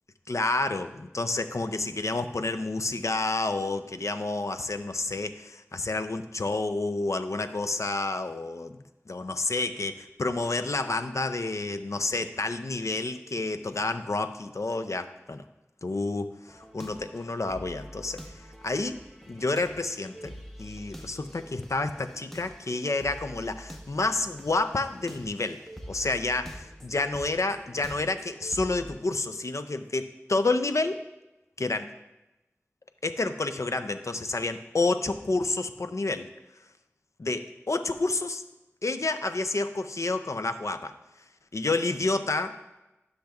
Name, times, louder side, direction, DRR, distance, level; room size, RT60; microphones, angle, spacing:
voice 1, 0.3-8.8 9.1-15.4 15.8-18.3 18.6-19.0 19.3-20.3 20.6-25.6 25.9-31.0 31.6-31.9 33.0-36.3 37.2-38.4 38.8-40.9 41.5-42.6, left 3 dB, 80° left, 10 dB, 0.4 m, -29 dB
sound 1, 16.5-28.9, equal, 5° left, 0.9 m, -46 dB
11.5 x 6.4 x 2.3 m, 0.99 s
wide cardioid pair, 45°, 5 cm